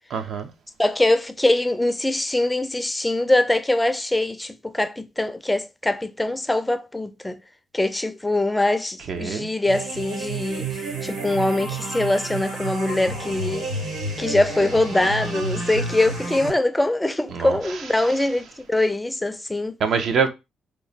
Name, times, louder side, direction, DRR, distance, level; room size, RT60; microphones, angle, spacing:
voice 1, 0.1-0.5 9.1-9.5 17.3-17.8 19.8-20.3, right 6 dB, 65° right, 0.6 m, -24 dB
voice 2, 0.8-7.4 7.7-13.7 14.2-19.7, left 2 dB, 10° left, 0.4 m, -23 dB
sound 1, 9.6-16.5, right 3 dB, 85° right, 2.0 m, -30 dB
3.0 x 2.1 x 3.9 m
cardioid pair, 90°, 0 cm